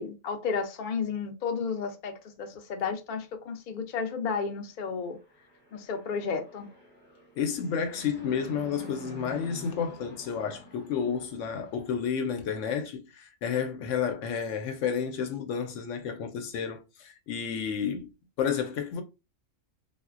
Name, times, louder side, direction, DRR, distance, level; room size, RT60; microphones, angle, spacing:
voice 1, 0.0-5.2 5.7-6.7, left 5 dB, 55° left, 0.5 m, -32 dB
Fixed-wing aircraft airplane, 5.1-12.5, right 1 dB, 10° right, 0.7 m, -48 dB
voice 2, 7.4-18.1 18.4-19.0, left 7 dB, 75° left, 0.9 m, -31 dB
3.8 x 2.1 x 2.4 m
omnidirectional pair, 1.4 m